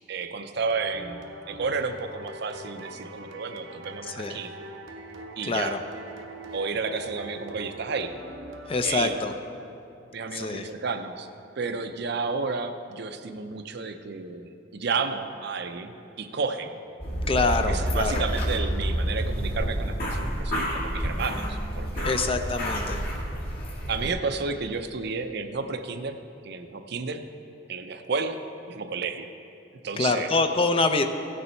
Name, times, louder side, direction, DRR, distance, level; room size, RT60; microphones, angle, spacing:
voice 1, 0.1-1.2 1.5-4.5 5.4-5.8 6.5-8.1 8.8-9.2 10.1-11.3 11.6-16.7 17.7-22.2 23.9-26.2 26.4-27.2 27.7-28.4 28.7-29.3 29.8-30.3, right 4 dB, 60° right, 8 dB, 0.6 m, -31 dB
sound 1, 0.7-9.6, right 1 dB, 85° right, 0.9 m, -42 dB
voice 2, 4.0-4.4 5.4-5.8 8.7-9.3 10.3-10.7 17.3-18.3 22.0-23.0 30.0-31.0, left 3 dB, 30° left, 7 dB, 0.5 m, -25 dB
sound 2, 17.0-24.1, equal, 55° left, 2.0 m, -29 dB
16.0 x 6.8 x 4.4 m, 2.8 s
head